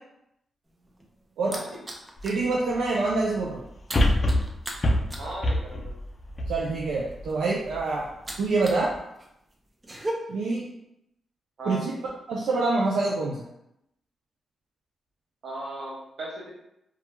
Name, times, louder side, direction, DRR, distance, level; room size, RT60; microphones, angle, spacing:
sound 1, 0.7-2.5 2.8-3.0 3.3-8.9 9.2-10.1, right 1 dB, 25° right, 0.5 m, -39 dB
sound 2, 2.2-2.3 3.9-7.3 7.8-7.9, left 1 dB, 40° left, 0.3 m, -25 dB
voice 1, 2.2-3.6 6.5-8.1 8.4-8.9 10.3-10.7 11.7-11.9 12.3-13.4, right 3 dB, 85° right, -4 dB, 0.3 m, -26 dB
voice 2, 5.2-5.9 11.6-11.8 15.4-16.5, right 1 dB, 65° right, -4 dB, 1.0 m, -37 dB
2.3 x 2.1 x 2.9 m, 0.82 s
cardioid pair, 70°, 0 cm